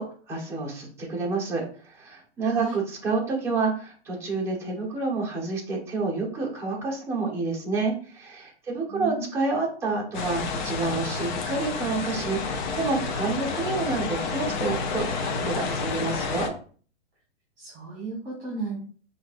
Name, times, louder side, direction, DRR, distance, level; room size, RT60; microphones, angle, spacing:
voice 1, 0.0-16.5, right 3 dB, 10° right, -4 dB, 1.1 m, -29 dB
voice 2, 2.4-2.8 8.9-9.3 17.6-18.8, right 4 dB, 25° right, -4 dB, 1.6 m, -34 dB
sound 1, 10.1-16.5, left 4 dB, 45° left, 0.7 m, -30 dB
5.7 x 2.6 x 2.5 m, 0.43 s
hypercardioid pair, 155°, 34 cm